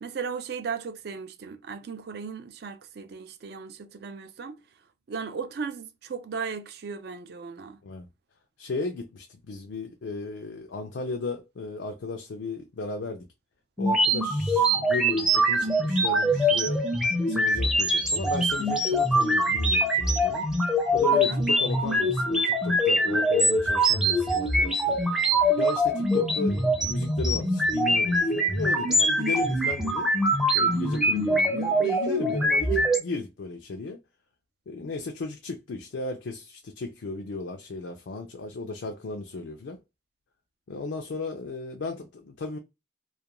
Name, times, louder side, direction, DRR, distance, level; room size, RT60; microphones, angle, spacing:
voice 1, 0.0-4.6 5.1-7.8 21.1-21.4, right 5 dB, 60° right, 0.4 m, -36 dB
voice 2, 8.6-13.3 13.8-16.8 17.3-20.5 20.9-25.0 25.6-30.1 30.5-34.0 34.7-39.8 40.7-42.6, left 3 dB, 90° left, 0.4 m, -35 dB
sound 1, 13.8-33.0, equal, 5° right, 0.5 m, -23 dB
2.3 x 2.2 x 2.9 m
head